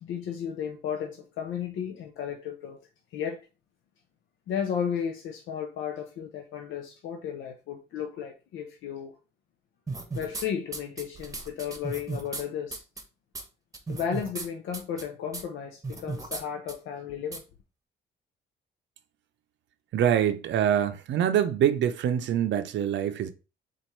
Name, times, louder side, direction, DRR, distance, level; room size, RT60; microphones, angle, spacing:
voice 1, 0.0-2.8 3.1-3.4 4.5-9.1 10.1-12.8 13.9-17.4, left 8 dB, 80° left, 0.6 m, -34 dB
sound 1, 9.9-10.4 10.7-12.4 12.7-13.0 13.3-13.4 13.7-14.5 14.7-15.0 15.3-15.4 15.8-16.4 16.7-16.8 17.3-17.4, right 3 dB, 15° right, 1.0 m, -35 dB
voice 2, 19.9-23.3, right 9 dB, 70° right, 0.6 m, -25 dB
4.1 x 2.5 x 4.5 m
cardioid pair, 90°, 20 cm